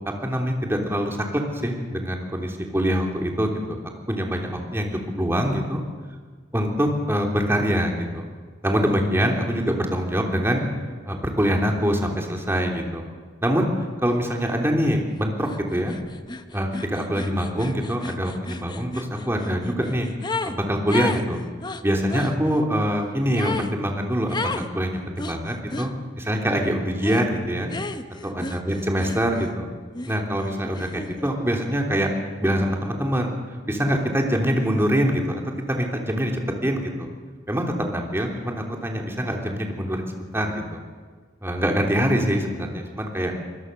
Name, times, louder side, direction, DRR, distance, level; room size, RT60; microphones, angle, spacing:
voice 1, 0.2-3.8 4.1-4.9 5.1-5.8 6.5-8.2 8.6-10.6 11.1-13.0 13.4-13.7 14.0-15.9 16.5-20.1 20.4-21.4 21.8-25.9 26.2-27.7 28.2-29.7 30.1-32.1 32.4-33.3 33.7-35.4 35.7-36.3 36.6-37.1 37.5-40.8 41.4-43.3, equal, 15° right, 1 dB, 3.3 m, -24 dB
sound 1, 15.4-15.6 15.9-20.6 20.9-22.3 23.3-23.7 24.3-24.7 25.2-25.9 27.0-27.3 27.7-29.6 29.9-31.3, left 3 dB, 25° left, 1.0 m, -33 dB
25.5 x 21.0 x 6.8 m, 1.5 s
head